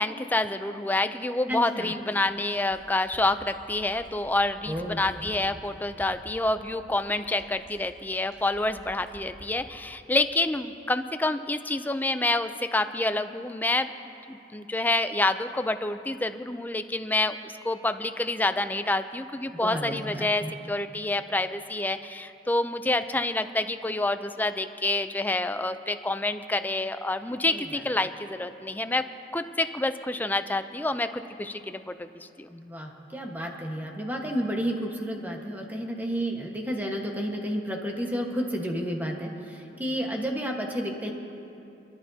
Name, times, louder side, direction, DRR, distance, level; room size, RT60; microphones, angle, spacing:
voice 1, 0.0-13.9 14.3-29.1 29.3-32.5, left 2 dB, 10° left, 10 dB, 0.4 m, -28 dB
voice 2, 1.5-1.9 4.7-5.0 19.6-20.5 27.5-27.8 32.5-41.1, equal, 10° right, 1 dB, 1.3 m, -31 dB
Fill (with liquid), 1.5-9.6 10.9-11.0, right 1 dB, 85° right, 4.0 m, -49 dB
28.0 x 12.0 x 2.8 m, 2.7 s
head